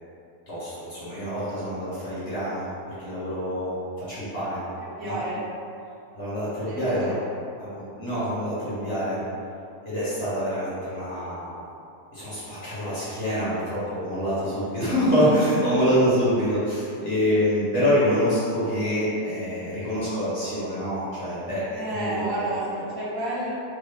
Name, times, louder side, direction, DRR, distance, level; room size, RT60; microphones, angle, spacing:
voice 1, 0.5-2.7 3.0-4.6 5.0-5.2 6.1-7.1 7.6-9.2 9.8-11.6 12.1-22.2, equal, 45° left, -11 dB, 1.2 m, -26 dB
voice 2, 5.0-5.4 6.7-7.1 14.6-14.7 21.7-23.5, right 1 dB, 70° right, -9 dB, 1.3 m, -30 dB
3.7 x 2.1 x 3.5 m, 2.6 s
omnidirectional pair, 1.6 m